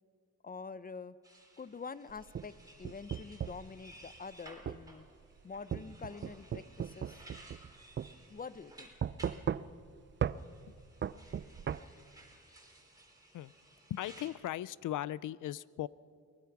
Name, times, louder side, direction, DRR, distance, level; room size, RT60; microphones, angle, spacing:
voice 1, 0.4-1.2 1.6-5.1 5.4-7.2 8.3-8.9, left 5 dB, 30° left, 16 dB, 0.6 m, -46 dB
sound 1, 1.2-9.4 10.2-14.3, right 1 dB, 10° right, 3.6 m, -57 dB
sound 2, 2.1-3.7 4.7-4.8 5.7-7.7 8.0-8.1 9.0-9.9 10.2-10.4 11.0-11.8, right 8 dB, 40° right, 0.4 m, -36 dB
voice 2, 13.9-15.9, left 13 dB, 80° left, 20 dB, 0.5 m, -38 dB
23.0 x 19.0 x 6.0 m, 2.2 s
cardioid pair, 105°, 30 cm